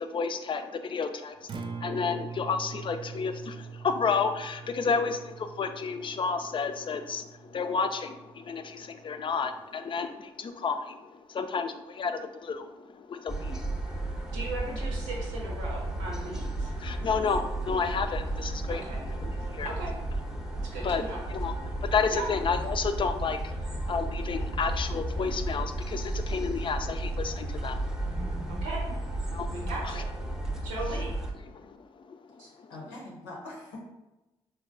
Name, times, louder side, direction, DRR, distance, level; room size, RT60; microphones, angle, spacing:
voice 1, 0.0-14.4 16.8-18.8 19.2-19.7 20.4-21.0 21.3-28.6 29.3-29.6 30.3-30.7 31.5-32.7, left 5 dB, 40° left, 8 dB, 0.4 m, -32 dB
Acoustic guitar, 1.4-9.5, right 5 dB, 35° right, 0.3 m, -43 dB
sound 1, 13.3-31.3, right 1 dB, 5° right, 0.7 m, -33 dB
voice 2, 14.3-16.7 18.7-19.0 19.8-19.9 20.6-21.2 22.1-22.3 28.5-28.8 29.5-30.0 30.6-31.1 32.4-32.5, right 2 dB, 85° right, -3 dB, 0.8 m, -37 dB
voice 3, 32.4-33.8, left 2 dB, 85° left, -2 dB, 0.7 m, -43 dB
3.7 x 2.2 x 2.5 m, 1.0 s
hypercardioid pair, 45°, 13 cm